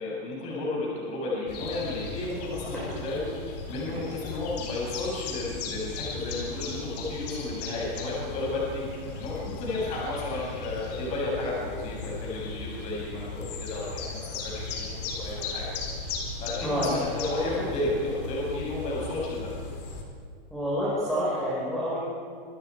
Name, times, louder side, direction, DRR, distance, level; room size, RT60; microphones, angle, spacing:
voice 1, 0.0-3.3 3.7-15.7 16.4-19.5, left 2 dB, 25° left, -4 dB, 7.5 m, -32 dB
sound 1, 1.5-20.0, left 4 dB, 45° left, 4.5 m, -37 dB
voice 2, 16.6-16.9 20.5-22.0, equal, ahead, -8 dB, 5.5 m, -28 dB
28.0 x 24.0 x 4.9 m, 2.2 s
hypercardioid pair, 165°, 29 cm